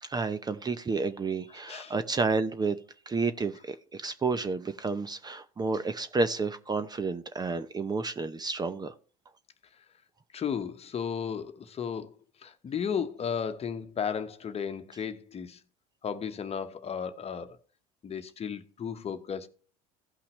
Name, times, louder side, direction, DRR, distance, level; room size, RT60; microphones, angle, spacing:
voice 1, 0.0-2.8 3.1-8.9, right 4 dB, 20° right, 0.7 m, -30 dB
voice 2, 10.3-12.1 12.4-15.6 16.0-17.6 18.0-19.5, left 7 dB, 35° left, 1.1 m, -34 dB
16.5 x 5.7 x 3.2 m
hypercardioid pair, 75°, 19 cm